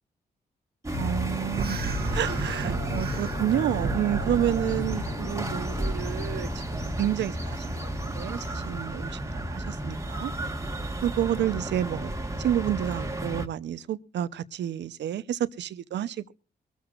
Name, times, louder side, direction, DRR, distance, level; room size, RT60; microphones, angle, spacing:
sound 1, 0.8-13.5, right 1 dB, 15° right, 1.7 m, -33 dB
sound 2, 0.9-10.9 11.2-11.4, left 2 dB, 60° left, 3.0 m, -37 dB
voice 1, 1.0-7.6 8.0-10.3 11.0-12.1 12.4-16.3, right 11 dB, 85° right, 0.8 m, -30 dB
sound 3, 1.5-5.0, right 4 dB, 60° right, 1.2 m, -33 dB
23.5 x 13.5 x 2.5 m
cardioid pair, 55°, 18 cm